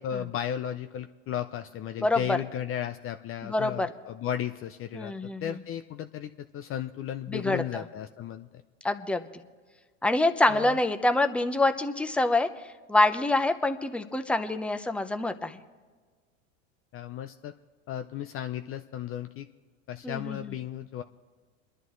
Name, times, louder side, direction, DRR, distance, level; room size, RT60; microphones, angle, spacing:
voice 1, 0.0-8.6 10.5-10.8 16.9-17.5 17.9-19.5 19.9-21.0, left 10 dB, 35° left, 9 dB, 0.5 m, -35 dB
voice 2, 2.0-2.4 3.4-3.9 4.9-5.5 7.3-7.8 8.8-9.3 10.0-12.5 12.9-15.6 20.0-20.5, left 2 dB, 5° left, 8 dB, 0.7 m, -26 dB
28.5 x 11.0 x 3.1 m, 1.5 s
supercardioid pair, 105°, 37 cm